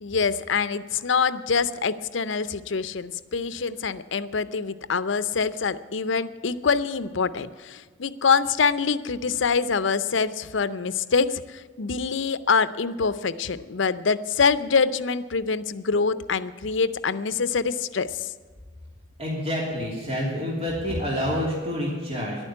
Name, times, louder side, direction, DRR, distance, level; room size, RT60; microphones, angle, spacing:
voice 1, 0.0-18.3, left 5 dB, 70° left, 14 dB, 0.6 m, -25 dB
voice 2, 19.2-22.4, equal, 30° right, -4 dB, 2.9 m, -28 dB
11.5 x 9.0 x 9.8 m, 1.5 s
head